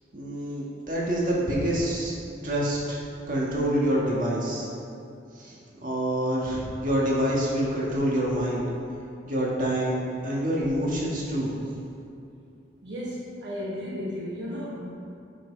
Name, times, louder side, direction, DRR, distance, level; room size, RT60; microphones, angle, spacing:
voice 1, 0.1-2.1 2.4-3.0 3.3-4.7 5.3-5.6 5.8-8.6 9.2-11.5, right 1 dB, 45° right, -5 dB, 1.7 m, -26 dB
voice 2, 12.8-14.9, equal, 70° right, -6 dB, 1.1 m, -34 dB
7.4 x 5.5 x 5.2 m, 2.6 s
head